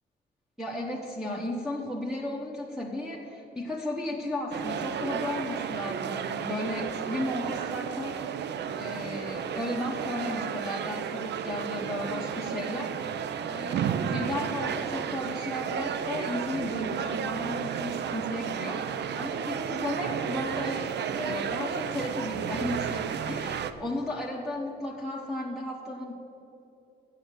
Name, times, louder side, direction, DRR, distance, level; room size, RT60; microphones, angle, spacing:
voice 1, 0.6-8.2 8.8-12.9 13.5-26.1, left 1 dB, ahead, -5 dB, 1.2 m, -34 dB
sound 1, 4.5-23.7, right 8 dB, 60° right, 0.6 m, -32 dB
7.8 x 7.4 x 8.3 m, 2.9 s
cardioid pair, 90°, 20 cm